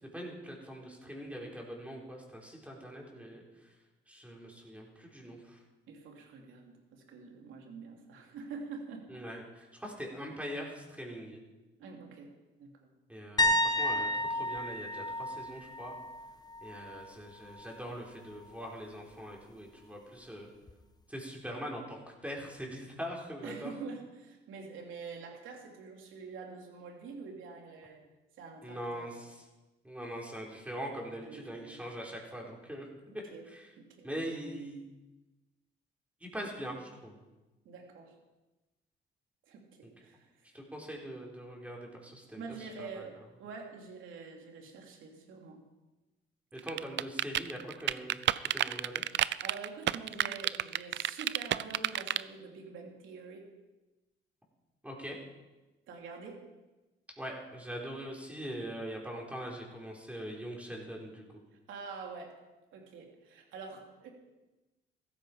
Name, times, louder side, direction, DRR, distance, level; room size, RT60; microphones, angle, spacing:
voice 1, 0.1-3.4 4.1-5.6 9.1-11.4 13.1-16.0 16.6-20.5 21.1-23.7 28.6-29.4 29.8-32.8 33.5-33.7 34.0-34.8 36.2-37.2 40.5-43.1 46.5-48.2 48.5-49.0 54.8-55.2 57.2-61.2, equal, 5° right, -2 dB, 4.3 m, -42 dB
voice 2, 5.9-9.1 11.8-12.3 12.6-12.9 23.4-28.1 28.4-29.1 31.2-31.8 33.3-33.4 33.8-34.1 37.6-38.1 39.5-40.5 42.3-45.6 49.4-53.5 55.9-56.4 61.7-62.4 62.7-64.1, right 4 dB, 80° right, 1 dB, 3.1 m, -46 dB
sound 1, 13.4-17.1 17.5-17.8 20.7-20.8, left 1 dB, 20° left, 1.1 m, -32 dB
sound 2, 46.7-52.2, right 13 dB, 65° right, 0.5 m, -29 dB
15.0 x 13.5 x 5.1 m, 1.1 s
cardioid pair, 90°, 20 cm